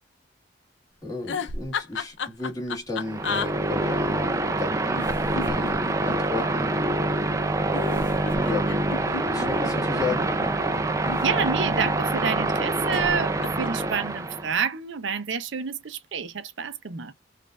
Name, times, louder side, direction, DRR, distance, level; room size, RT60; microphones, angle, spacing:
voice 1, 1.0-5.0 5.4-6.7 8.3-8.7 9.3-10.3, left 3 dB, 20° left, 1.5 m, -33 dB
sound 1, 1.3-3.5 4.9-6.5 7.7-10.0 10.9-11.9 12.9-13.1 13.4-13.8, left 5 dB, 85° left, 0.6 m, -33 dB
sound 2, 3.0-14.5, right 2 dB, 15° right, 0.4 m, -26 dB
sound 3, 9.1-12.3, left 1 dB, 50° left, 0.8 m, -41 dB
voice 2, 11.2-17.1, right 6 dB, 85° right, 0.6 m, -28 dB
4.0 x 2.5 x 2.3 m
head